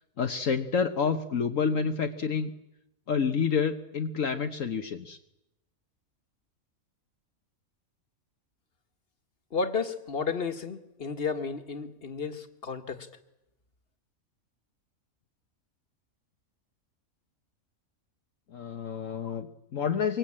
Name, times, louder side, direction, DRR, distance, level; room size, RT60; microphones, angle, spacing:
voice 1, 0.2-2.5 3.1-5.2 18.5-20.2, left 6 dB, 65° left, 6 dB, 1.5 m, -28 dB
voice 2, 9.5-13.1, left 5 dB, 40° left, 8 dB, 2.0 m, -32 dB
25.0 x 24.5 x 8.8 m, 0.89 s
omnidirectional pair, 1.5 m